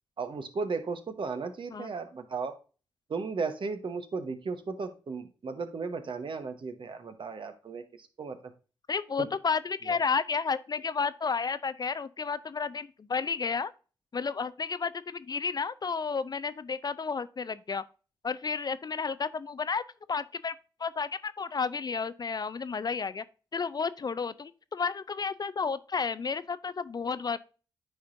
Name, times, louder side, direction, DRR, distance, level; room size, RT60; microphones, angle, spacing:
voice 1, 0.2-2.5 3.1-8.4 9.2-9.3 9.9-10.0, right 4 dB, 55° right, 1.1 m, -35 dB
voice 2, 8.9-13.7 14.1-17.8 18.2-19.8 20.1-20.5 20.8-23.2 23.5-27.4, left 5 dB, 45° left, 0.4 m, -32 dB
9.2 x 4.3 x 2.6 m
supercardioid pair, 45°, 10 cm